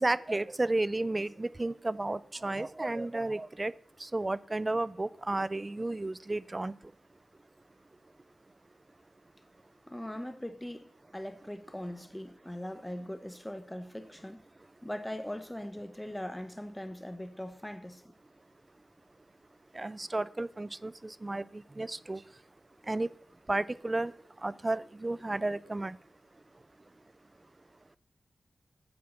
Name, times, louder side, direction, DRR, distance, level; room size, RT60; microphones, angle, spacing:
voice 1, 0.0-3.7 4.1-6.7 19.8-20.9 21.2-21.4 21.8-22.2 22.9-23.1 23.5-24.1 24.4-25.9, right 2 dB, 30° right, 0.5 m, -32 dB
voice 2, 9.9-10.8 11.1-14.4 14.8-18.1, left 1 dB, 10° left, 1.1 m, -40 dB
9.6 x 7.5 x 7.3 m
cardioid pair, 60°, 0 cm